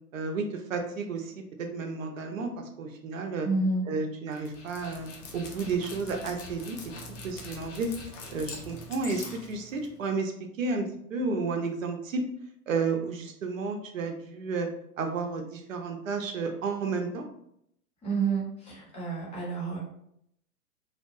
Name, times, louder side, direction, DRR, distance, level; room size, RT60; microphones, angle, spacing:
voice 1, 0.1-1.3 1.6-3.5 3.9-5.1 5.3-6.8 7.2-7.9 8.3-10.3 10.6-10.8 11.1-12.2 12.7-14.7 15.0-17.2, right 4 dB, 60° right, 4 dB, 0.6 m, -32 dB
voice 2, 3.4-3.8 18.0-19.8, right 4 dB, 15° left, -4 dB, 0.7 m, -29 dB
Dog, 4.3-10.1, left 2 dB, 55° left, 0.7 m, -44 dB
2.8 x 2.2 x 2.5 m, 0.72 s
figure-of-eight pair, 110°, 46 cm